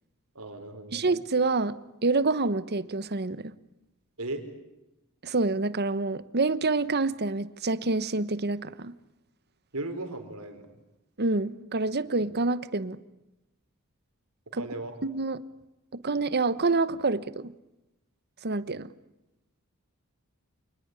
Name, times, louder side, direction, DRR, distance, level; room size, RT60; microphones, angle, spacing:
voice 1, 0.3-1.1 4.2-4.4 9.7-10.7 14.5-14.9, right 2 dB, 75° right, 7 dB, 4.8 m, -36 dB
voice 2, 0.9-3.5 5.2-8.9 11.2-13.0 14.5-14.6 15.0-15.4 16.0-17.5 18.4-18.9, right 3 dB, 50° right, 15 dB, 1.1 m, -27 dB
27.5 x 20.0 x 9.8 m, 0.94 s
head